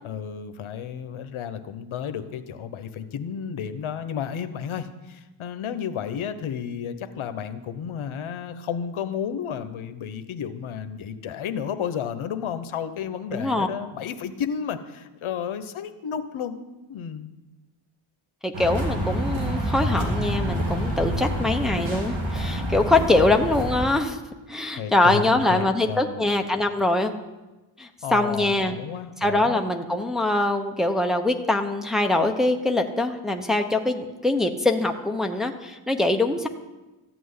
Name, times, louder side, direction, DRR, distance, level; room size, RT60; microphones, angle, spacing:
voice 1, 0.0-16.5 16.9-17.3 23.1-23.4 24.7-26.3 28.0-29.6, left 8 dB, 75° left, 10 dB, 1.0 m, -32 dB
voice 2, 13.3-13.7 18.4-24.2 24.5-27.1 27.8-28.8 29.2-36.5, left 2 dB, ahead, 3 dB, 0.9 m, -23 dB
sound 1, 18.5-23.8, right 1 dB, 65° right, 3.2 m, -27 dB
14.0 x 6.2 x 9.6 m, 1.1 s
wide cardioid pair, 115°, 49 cm